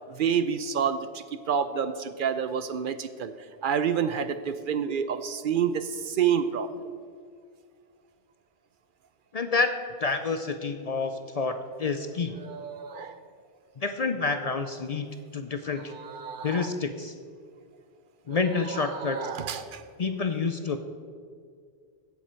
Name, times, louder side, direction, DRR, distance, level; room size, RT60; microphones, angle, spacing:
voice 1, 0.1-3.3 3.6-6.9 12.4-13.2 15.7-16.7 18.5-19.8, right 7 dB, 65° right, 11 dB, 0.7 m, -29 dB
voice 2, 9.3-9.7 10.0-12.4 13.8-15.1 15.3-15.9 16.4-17.1 18.3-19.2 20.0-20.8, left 4 dB, 45° left, 8 dB, 0.6 m, -28 dB
16.0 x 7.3 x 4.4 m, 2.1 s
omnidirectional pair, 1.0 m